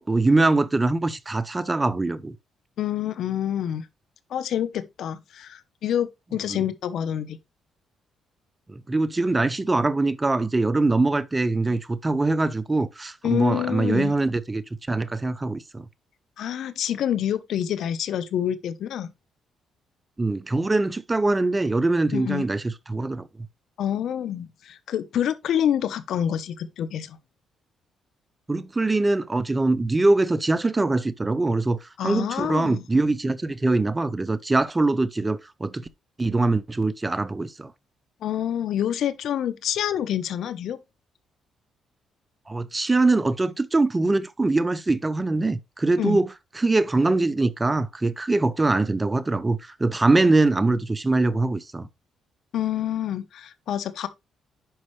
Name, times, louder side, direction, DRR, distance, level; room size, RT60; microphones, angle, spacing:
voice 1, 0.0-2.3 6.5-6.6 8.7-14.6 14.9-15.8 20.2-23.3 28.5-35.9 36.2-37.7 42.5-46.3 46.6-51.9, right 2 dB, 20° right, 0.8 m, -23 dB
voice 2, 2.8-3.9 4.3-7.4 13.2-14.1 16.4-19.1 22.1-22.4 23.8-27.2 32.0-32.8 38.2-40.8 46.0-46.2 52.5-54.1, left 10 dB, 70° left, 1.0 m, -27 dB
10.5 x 5.4 x 3.2 m
cardioid pair, 90°, 0 cm